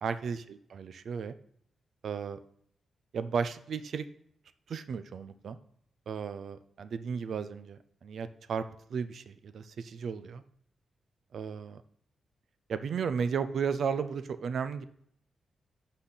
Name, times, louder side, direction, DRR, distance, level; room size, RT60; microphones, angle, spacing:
voice 1, 0.0-1.3 2.0-2.4 3.1-4.1 4.7-5.6 6.1-10.4 11.3-11.8 12.7-14.8, right 6 dB, 60° right, 12 dB, 0.5 m, -34 dB
11.5 x 4.1 x 3.9 m, 0.67 s
wide cardioid pair, 145°, 0 cm